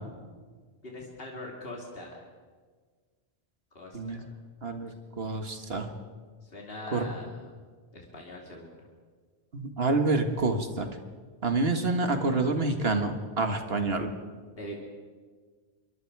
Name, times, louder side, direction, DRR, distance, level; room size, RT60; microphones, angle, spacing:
voice 1, 0.8-2.3 3.7-4.3 6.4-7.5 7.9-8.9 14.6-14.8, left 1 dB, 60° left, -1 dB, 3.0 m, -42 dB
voice 2, 4.6-4.9 5.2-5.9 6.9-7.0 9.5-10.9 11.4-14.1, right 3 dB, 65° right, 6 dB, 1.9 m, -27 dB
26.5 x 23.0 x 4.8 m, 1.5 s
omnidirectional pair, 1.1 m